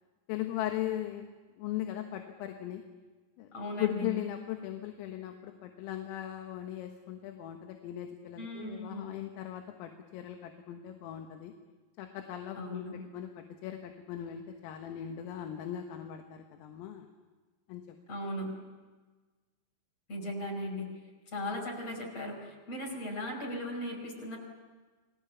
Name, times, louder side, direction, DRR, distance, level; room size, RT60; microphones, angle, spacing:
voice 1, 0.3-1.3 1.6-2.8 3.4-3.5 3.8-11.5 12.0-17.1 17.7-18.0, left 12 dB, 90° left, 4 dB, 4.0 m, -38 dB
voice 2, 3.5-4.1 8.4-9.1 12.6-12.9 18.1-18.5 20.1-20.9 21.3-24.4, left 1 dB, 30° left, 0 dB, 5.8 m, -37 dB
29.5 x 20.5 x 7.2 m, 1.3 s
omnidirectional pair, 5.8 m